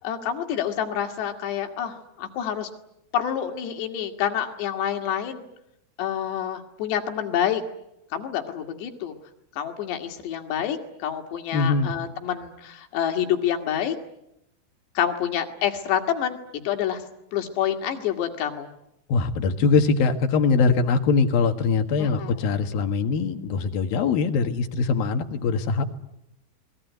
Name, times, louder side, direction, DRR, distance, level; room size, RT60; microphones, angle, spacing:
voice 1, 0.0-2.7 3.1-5.5 6.0-7.6 8.1-9.1 9.6-14.0 15.0-16.4 16.7-17.0 17.3-18.7 22.0-22.4, left 9 dB, 90° left, 5 dB, 4.4 m, -27 dB
voice 2, 11.5-11.9 19.1-25.8, left 4 dB, 65° left, 7 dB, 3.3 m, -22 dB
29.0 x 21.5 x 9.4 m, 0.85 s
omnidirectional pair, 4.8 m